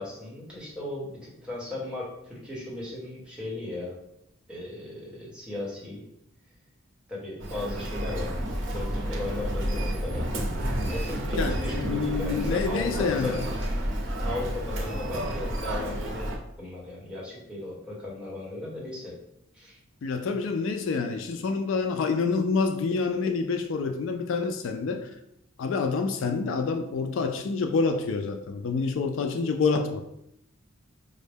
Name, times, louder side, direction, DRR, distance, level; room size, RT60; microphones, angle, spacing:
voice 1, 0.0-4.0 4.5-6.1 7.1-8.3 8.7-10.3 10.9-13.5 14.2-16.3 16.6-19.1 19.5-19.8, left 2 dB, 5° right, -6 dB, 1.0 m, -36 dB
Human voice, 7.4-16.4, equal, 60° right, 0.6 m, -30 dB
voice 2, 11.4-13.4 20.0-25.1 25.6-30.0, left 4 dB, 65° left, 6 dB, 0.3 m, -27 dB
5.1 x 2.1 x 3.4 m, 0.80 s
head